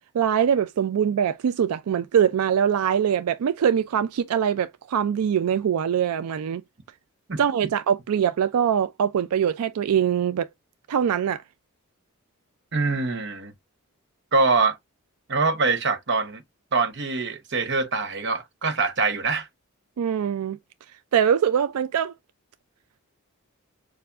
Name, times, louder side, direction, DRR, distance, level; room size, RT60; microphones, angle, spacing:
voice 1, 0.1-6.6 7.4-10.5 10.9-11.4 20.0-20.6 21.1-22.1, right 8 dB, 85° right, 0.3 m, -23 dB
voice 2, 12.7-13.5 14.3-14.8 15.3-16.4 16.7-19.5, right 4 dB, 50° right, 0.9 m, -24 dB
6.8 x 2.6 x 2.4 m
head